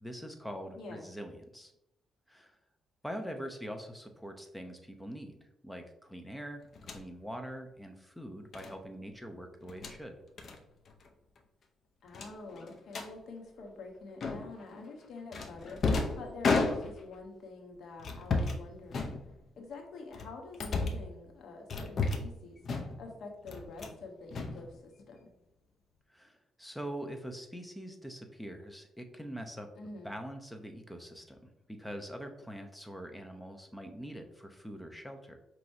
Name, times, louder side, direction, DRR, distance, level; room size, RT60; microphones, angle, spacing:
voice 1, 0.0-1.7 2.3-2.6 3.0-10.2 26.1-35.4, equal, 5° left, 5 dB, 0.6 m, -44 dB
voice 2, 0.8-1.1 12.0-15.8 16.2-19.2 19.6-22.6 23.0-25.3 29.7-30.1, left 3 dB, 65° left, 2 dB, 1.0 m, -46 dB
sound 1, 6.8-7.0 8.5-8.7 9.6-10.0 10.4-10.6 10.9-11.1 11.4-11.5 12.1-13.1 14.2-14.6 15.3-17.2 18.0-18.6 18.9-19.6 20.1-21.1 21.7-22.4 22.6-23.1 23.5-24.0 24.3-25.1, left 3 dB, 50° left, 0.6 m, -33 dB
5.4 x 3.0 x 2.6 m, 0.87 s
cardioid pair, 90°, 0 cm